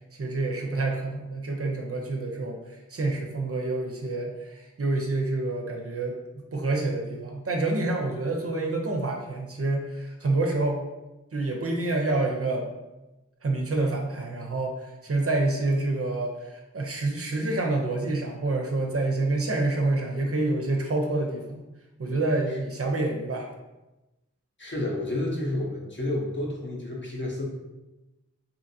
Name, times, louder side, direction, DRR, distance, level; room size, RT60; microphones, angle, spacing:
voice 1, 0.2-2.6 2.9-10.8 11.3-12.7 13.4-21.6 22.0-23.5, right 2 dB, 55° right, 0 dB, 0.5 m, -27 dB
voice 2, 24.6-27.5, left 1 dB, 40° left, -2 dB, 0.7 m, -30 dB
2.7 x 2.5 x 2.6 m, 1.0 s
wide cardioid pair, 45°, 29 cm